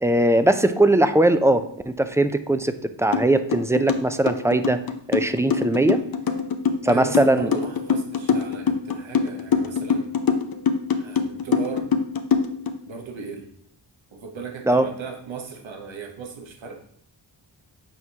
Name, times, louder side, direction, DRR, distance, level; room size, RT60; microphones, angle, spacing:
voice 1, 0.0-4.8 5.1-6.0 6.8-7.5 14.7-14.9, right 1 dB, 5° right, 10 dB, 0.4 m, -20 dB
sound 1, 3.1-3.2 3.5-12.7, left 6 dB, 50° left, 0.7 m, -23 dB
voice 2, 6.9-10.1 11.0-11.9 12.9-13.5 14.1-16.8, right 5 dB, 85° right, 3 dB, 1.0 m, -36 dB
7.6 x 4.6 x 2.8 m, 0.71 s
cardioid pair, 55°, 45 cm